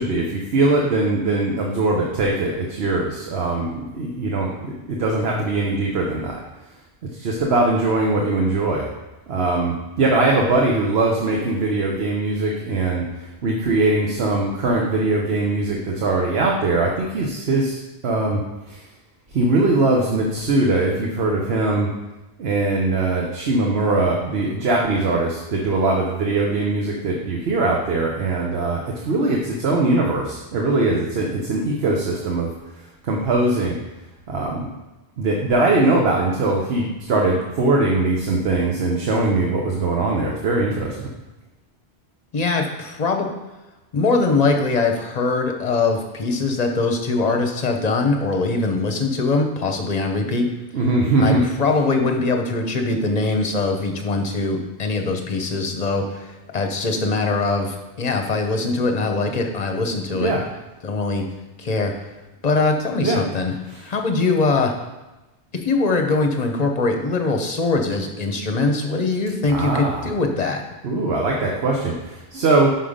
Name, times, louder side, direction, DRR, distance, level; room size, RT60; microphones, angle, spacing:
voice 1, 0.0-6.4 7.1-8.9 9.3-13.1 13.4-17.8 18.0-18.4 18.7-18.8 19.3-21.9 22.4-32.5 33.0-33.8 34.3-34.7 35.2-41.1 50.7-51.7 60.1-60.4 63.0-63.2 63.7-63.9 69.4-70.1 70.8-72.7, right 2 dB, 70° right, -1 dB, 1.1 m, -21 dB
voice 2, 42.3-43.3 43.9-50.5 51.2-60.3 60.8-61.3 61.6-61.9 62.4-63.5 63.8-64.7 65.6-70.6, left 3 dB, 40° left, 4 dB, 0.9 m, -22 dB
5.7 x 5.5 x 5.0 m, 1.1 s
omnidirectional pair, 1.1 m